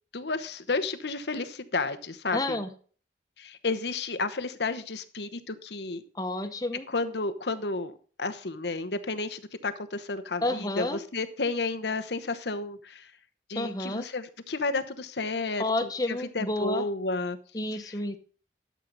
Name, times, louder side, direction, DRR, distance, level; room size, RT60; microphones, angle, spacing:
voice 1, 0.1-2.6 3.4-6.0 6.9-7.9 8.2-13.1 13.5-17.4 17.7-17.9, left 3 dB, 70° left, 10 dB, 1.0 m, -32 dB
voice 2, 2.3-2.7 6.1-6.8 10.4-11.0 13.5-14.0 15.6-16.8 17.5-18.2, left 2 dB, 20° left, 8 dB, 1.1 m, -30 dB
12.5 x 7.5 x 4.0 m, 0.41 s
head